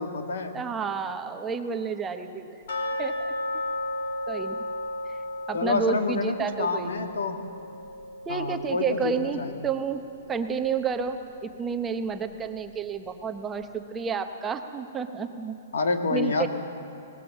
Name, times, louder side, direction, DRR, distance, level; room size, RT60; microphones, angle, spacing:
voice 1, 0.0-0.5 5.5-7.4 8.3-9.6 15.7-16.5, left 4 dB, 90° left, 6 dB, 2.2 m, -28 dB
voice 2, 0.5-2.6 3.0-3.3 4.3-4.7 5.1-5.2 5.5-6.9 8.3-10.0 10.3-15.6 16.1-16.5, right 6 dB, 10° right, 6 dB, 0.8 m, -30 dB
sound 1, 2.7-9.5 9.8-9.9 10.4-10.5 11.1-11.2, left 1 dB, 60° left, 5.0 m, -34 dB
25.0 x 19.5 x 7.3 m, 3.0 s
hypercardioid pair, 170°, 0 cm